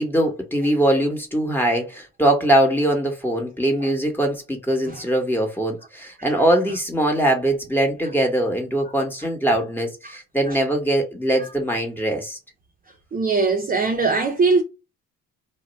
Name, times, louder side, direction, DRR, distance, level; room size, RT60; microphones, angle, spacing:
voice 1, 0.0-12.4, right 1 dB, 5° left, 1.2 m, -22 dB
voice 2, 13.1-14.6, right 4 dB, 30° right, 0.6 m, -21 dB
2.6 x 2.1 x 3.9 m
cardioid pair, 90°, 30 cm